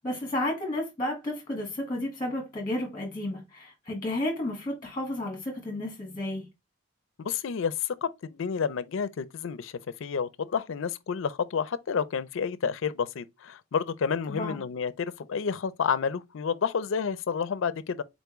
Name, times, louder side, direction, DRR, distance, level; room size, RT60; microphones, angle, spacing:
voice 1, 0.0-6.4 14.3-14.6, left 1 dB, 20° left, 1.4 m, -32 dB
voice 2, 7.2-9.7 10.0-18.0, left 6 dB, 70° left, 0.4 m, -30 dB
4.1 x 3.4 x 3.0 m
head